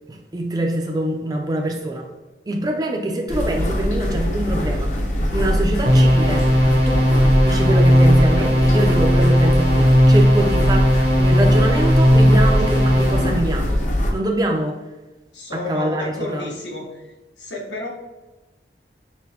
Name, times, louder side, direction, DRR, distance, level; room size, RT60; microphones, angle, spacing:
voice 1, 0.1-2.1 2.5-4.9 5.3-7.1 7.4-10.9 11.2-13.8 14.1-14.8 15.5-16.5, right 1 dB, 20° right, 2 dB, 0.4 m, -24 dB
sound 1, 3.3-14.1, equal, 45° left, 0.5 m, -22 dB
sound 2, 5.9-13.4, equal, 60° right, 0.8 m, -16 dB
voice 2, 15.3-17.0 17.4-17.9, left 2 dB, 90° left, -2 dB, 1.0 m, -31 dB
5.9 x 2.1 x 2.7 m, 1.1 s
head